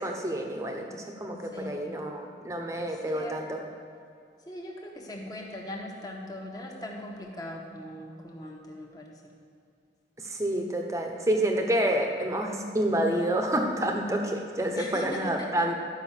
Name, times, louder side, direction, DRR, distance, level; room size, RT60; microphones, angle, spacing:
voice 1, 0.0-3.6 10.2-15.7, right 1 dB, 15° right, 2 dB, 0.9 m, -28 dB
voice 2, 1.5-1.9 2.7-3.4 4.5-9.1 14.7-15.7, left 1 dB, 20° left, -1 dB, 1.3 m, -40 dB
12.5 x 5.5 x 7.3 m, 2.3 s
head